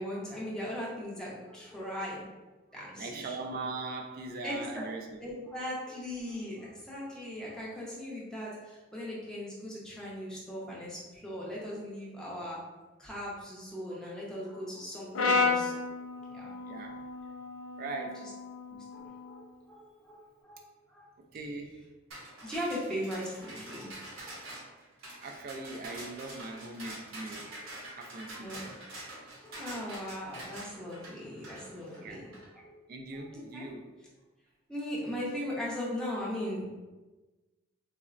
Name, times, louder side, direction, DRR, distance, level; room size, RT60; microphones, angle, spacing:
voice 1, 0.0-2.4 2.7-3.3 4.4-4.8 5.2-12.6 13.0-15.8 16.3-16.5 18.2-18.3 18.7-21.1 22.4-24.3 27.5-27.7 28.2-28.6 29.4-32.8 33.1-33.7 34.7-36.8, equal, 5° left, -6 dB, 0.6 m, -39 dB
voice 2, 2.8-5.2 13.9-14.1 16.6-17.0 17.8-18.3 21.3-21.9 25.2-27.5 27.9-28.5 32.0-32.2 32.9-33.8, right 3 dB, 45° right, 2 dB, 0.3 m, -40 dB
Brass instrument, 15.1-19.4, left 4 dB, 85° left, 0.4 m, -32 dB
sound 1, 22.1-32.5, right 1 dB, 75° right, 0.8 m, -45 dB
3.8 x 2.0 x 2.4 m, 1.2 s
head